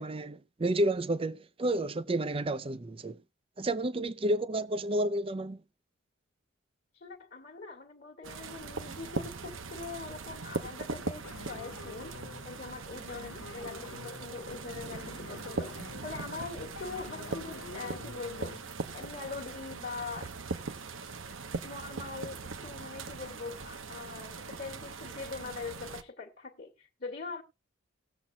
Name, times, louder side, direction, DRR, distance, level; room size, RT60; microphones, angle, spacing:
voice 1, 0.0-3.2 3.6-5.6, right 1 dB, 25° right, 0.5 m, -30 dB
voice 2, 6.9-18.6 18.9-20.3 21.6-27.4, left 4 dB, 45° left, 1.4 m, -42 dB
sound 1, 8.2-26.0, right 4 dB, 75° right, 1.0 m, -40 dB
sound 2, 11.2-18.6, left 3 dB, 75° left, 0.8 m, -48 dB
19.0 x 7.3 x 2.6 m
head